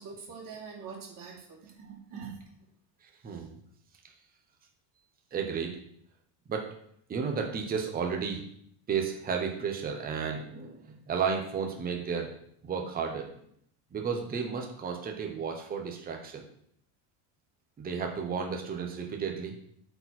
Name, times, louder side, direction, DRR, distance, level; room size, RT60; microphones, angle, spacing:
voice 1, 0.0-2.3, right 5 dB, 45° right, -2 dB, 2.8 m, -44 dB
voice 2, 3.2-3.6 5.3-5.8 6.5-6.7 7.1-8.4 8.9-12.3 12.6-13.3 13.9-16.4 17.8-19.5, right 6 dB, 20° right, 2 dB, 0.9 m, -33 dB
8.6 x 4.5 x 4.3 m, 0.67 s
cardioid pair, 170°, 45 cm